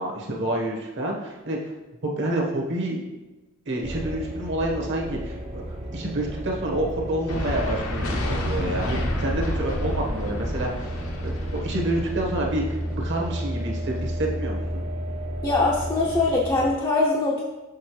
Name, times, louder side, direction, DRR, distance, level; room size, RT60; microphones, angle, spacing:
voice 1, 0.0-1.6 2.0-3.0 3.7-5.6 5.9-10.7 11.2-14.8, right 1 dB, 55° right, 0 dB, 1.2 m, -28 dB
sound 1, 3.8-16.8, right 1 dB, 25° right, 0.7 m, -32 dB
sound 2, 7.3-14.3, left 1 dB, 75° left, 1.0 m, -31 dB
voice 2, 15.4-17.4, left 2 dB, 20° left, -4 dB, 0.6 m, -22 dB
6.4 x 5.7 x 3.1 m, 1.1 s
head